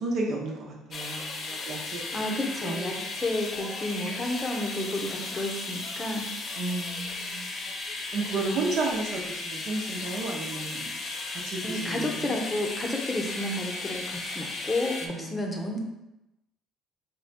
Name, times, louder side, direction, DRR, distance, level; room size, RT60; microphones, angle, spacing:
voice 1, 0.0-3.0 6.6-7.5 8.1-10.9 11.3-12.4 15.0-15.7, right 3 dB, 60° right, -1 dB, 0.8 m, -33 dB
sound 1, 0.9-15.1, left 3 dB, 45° left, 0.5 m, -35 dB
voice 2, 2.1-6.3 11.6-15.8, left 1 dB, 25° left, 1 dB, 0.8 m, -31 dB
3.6 x 2.2 x 4.2 m, 0.92 s
supercardioid pair, 70°, 0 cm